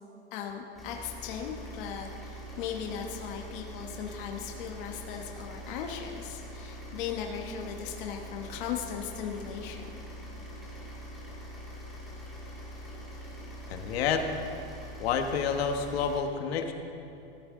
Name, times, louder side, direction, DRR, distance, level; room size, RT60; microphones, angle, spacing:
voice 1, 0.3-9.9, left 8 dB, 50° left, 2 dB, 1.2 m, -38 dB
sound 1, 0.7-16.2, equal, ahead, 2.4 m, -44 dB
voice 2, 13.7-14.3 15.0-16.7, left 6 dB, 70° left, 5 dB, 1.3 m, -29 dB
17.0 x 14.0 x 3.7 m, 2.7 s
supercardioid pair, 175°, 32 cm